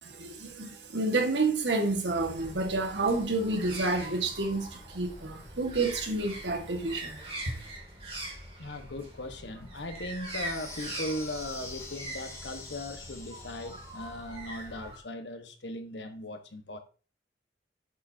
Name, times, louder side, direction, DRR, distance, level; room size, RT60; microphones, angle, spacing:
voice 1, 0.0-7.2, right 3 dB, 90° right, 1.8 m, -29 dB
sound 1, 2.1-15.0, right 1 dB, 35° right, 3.0 m, -43 dB
voice 2, 8.6-16.8, left 1 dB, 90° left, 1.4 m, -38 dB
sound 2, 10.2-14.2, left 3 dB, 15° left, 1.4 m, -45 dB
8.1 x 7.5 x 2.8 m
head